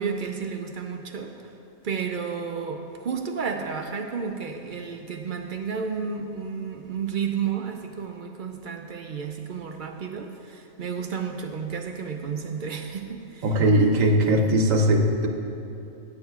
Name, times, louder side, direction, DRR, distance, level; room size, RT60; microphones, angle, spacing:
voice 1, 0.0-1.3 1.8-13.5, right 6 dB, 60° right, 4 dB, 0.5 m, -32 dB
voice 2, 13.4-15.3, right 1 dB, 75° right, 4 dB, 1.2 m, -20 dB
15.5 x 9.5 x 2.4 m, 2.9 s
omnidirectional pair, 1.4 m